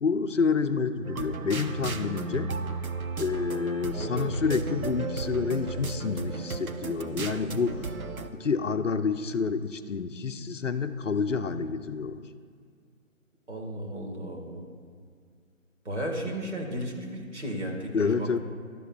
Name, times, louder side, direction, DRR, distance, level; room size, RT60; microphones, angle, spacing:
voice 1, 0.0-2.6 3.2-7.9 8.3-12.2 17.9-18.4, left 5 dB, 65° left, 10 dB, 0.5 m, -28 dB
sound 1, 1.0-8.3, right 4 dB, 85° right, 0.7 m, -34 dB
voice 2, 3.9-4.5 13.5-14.7 15.8-18.4, equal, 55° right, 0 dB, 1.8 m, -34 dB
11.5 x 9.9 x 2.4 m, 2.1 s
figure-of-eight pair, 155°, 41 cm